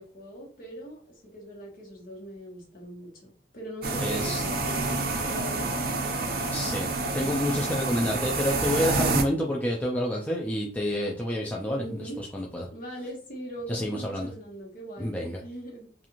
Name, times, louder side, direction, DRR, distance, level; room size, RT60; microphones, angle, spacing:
voice 1, 0.0-6.2 11.8-12.2 12.7-15.1 15.4-15.9, equal, 50° left, -3 dB, 1.1 m, -41 dB
sound 1, 3.8-9.2, right 3 dB, 55° right, 0.5 m, -28 dB
voice 2, 4.0-4.4 6.5-12.7 13.7-14.3 15.0-15.4, left 1 dB, 10° left, -2 dB, 0.3 m, -29 dB
2.5 x 2.4 x 2.9 m, 0.42 s
head